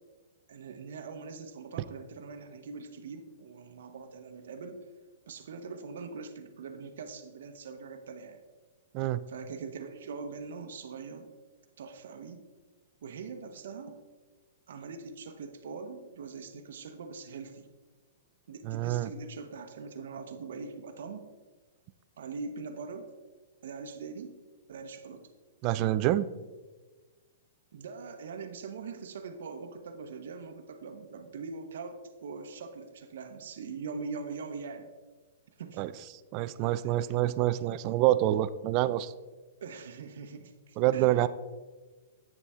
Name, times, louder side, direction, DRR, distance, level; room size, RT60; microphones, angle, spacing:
voice 1, 0.5-4.8 5.3-8.4 9.3-11.3 11.8-12.4 13.0-14.0 14.7-17.7 18.5-21.3 22.2-23.1 23.6-24.4 24.7-25.3 27.7-34.9 35.6-35.8 36.8-36.9 39.6-41.3, right 4 dB, 70° right, 5 dB, 0.8 m, -42 dB
voice 2, 18.6-19.1 25.6-26.3 35.8-35.9 36.3-39.1 40.8-41.3, right 14 dB, 35° right, 16 dB, 0.3 m, -26 dB
8.8 x 6.9 x 3.6 m, 1.3 s
hypercardioid pair, 155°, 0 cm